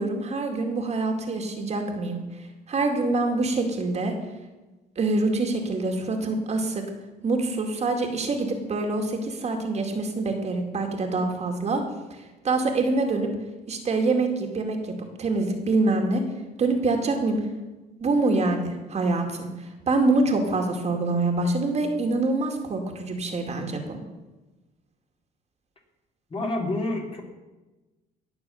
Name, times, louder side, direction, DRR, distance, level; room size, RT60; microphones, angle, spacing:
voice 1, 0.0-2.2 2.7-4.1 5.0-6.8 7.2-11.8 12.1-13.3 13.7-16.2 16.6-17.4 18.0-24.0, right 3 dB, 40° right, 3 dB, 2.3 m, -25 dB
voice 2, 26.3-27.2, left 2 dB, 30° left, 0 dB, 3.3 m, -28 dB
18.0 x 6.7 x 7.1 m, 1.2 s
cardioid pair, 110°, 17 cm